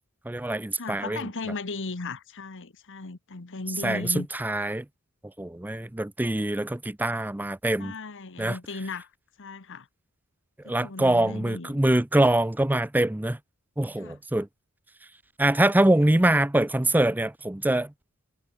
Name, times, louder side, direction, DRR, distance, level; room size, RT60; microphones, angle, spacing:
voice 1, 0.3-1.2 3.8-4.8 5.4-7.9 8.4-8.6 10.6-13.4 13.8-14.5 15.4-17.9, right 1 dB, 10° right, 0.5 m, -24 dB
voice 2, 0.8-4.3 7.8-9.1 9.4-9.9 10.6-11.8 14.0-14.2 16.0-16.1, left 3 dB, 60° left, 1.3 m, -36 dB
head